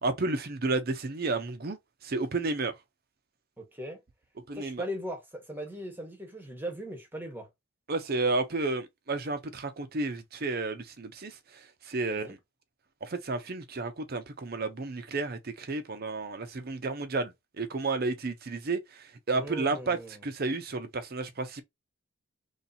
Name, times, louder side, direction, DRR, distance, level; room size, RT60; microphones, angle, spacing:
voice 1, 0.0-1.8 2.0-2.7 4.5-4.8 7.9-11.4 11.8-12.4 13.0-21.6, right 3 dB, 45° right, 0.6 m, -32 dB
voice 2, 3.6-4.0 4.5-7.5 12.1-12.3 19.3-20.2, equal, 10° right, 1.1 m, -39 dB
3.2 x 2.8 x 4.0 m
head